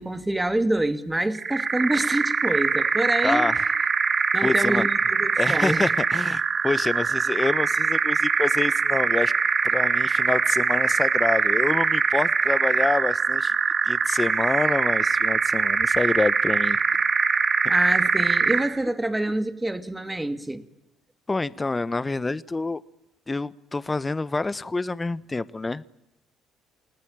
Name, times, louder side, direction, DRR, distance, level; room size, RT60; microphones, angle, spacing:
voice 1, 0.0-3.5 4.3-5.8 17.7-20.6, right 1 dB, 10° right, 2.4 m, -26 dB
sound 1, 1.3-18.8, right 5 dB, 40° right, 1.4 m, -23 dB
voice 2, 3.2-3.6 4.4-4.8 5.4-9.3 9.6-13.5 13.8-16.8 21.3-22.8 23.3-25.8, left 3 dB, 20° left, 1.1 m, -27 dB
29.0 x 18.5 x 9.0 m
hypercardioid pair, 55°, 0 cm